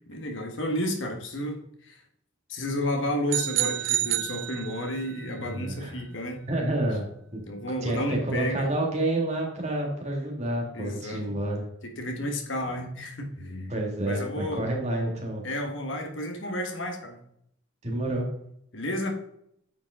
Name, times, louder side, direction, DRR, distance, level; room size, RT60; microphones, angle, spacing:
voice 1, 0.1-2.0 2.5-6.4 7.5-8.7 10.7-11.4 11.8-13.7 14.1-14.7 15.4-17.2 18.7-19.1, left 1 dB, 70° left, 3 dB, 1.5 m, -31 dB
sound 1, 3.3-5.1, right 14 dB, 65° right, 0.4 m, -28 dB
voice 2, 5.4-5.9 6.5-7.0 7.3-7.4 7.8-11.6 13.7-15.4 17.8-18.3, right 1 dB, 35° right, 0 dB, 2.1 m, -29 dB
8.9 x 5.1 x 3.7 m, 0.72 s
head